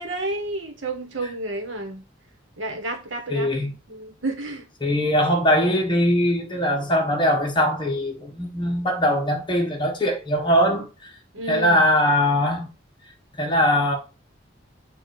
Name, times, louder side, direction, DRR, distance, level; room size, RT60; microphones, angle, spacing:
voice 1, 0.0-2.0 2.6-4.7 11.3-11.8, right 2 dB, 80° right, 1.4 m, -31 dB
voice 2, 3.3-3.7 4.8-11.1 11.5-12.7 13.4-14.0, equal, 25° left, 1.4 m, -21 dB
7.0 x 2.7 x 4.9 m
head